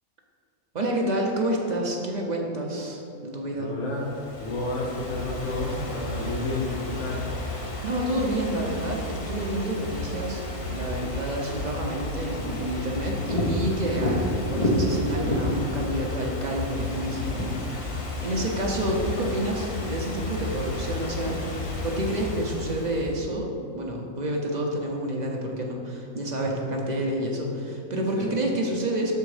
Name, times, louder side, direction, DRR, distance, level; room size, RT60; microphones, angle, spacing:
voice 1, 0.7-3.7 7.8-10.4 10.7-23.5 23.7-29.1, right 1 dB, 55° right, -1 dB, 0.5 m, -29 dB
voice 2, 3.5-7.2 26.4-26.8 28.1-28.3, left 2 dB, 60° left, -3 dB, 1.1 m, -31 dB
Ocean / Fireworks, 3.9-23.2, left 1 dB, 45° left, 0.4 m, -31 dB
6.1 x 4.5 x 4.8 m, 2.7 s
omnidirectional pair, 1.5 m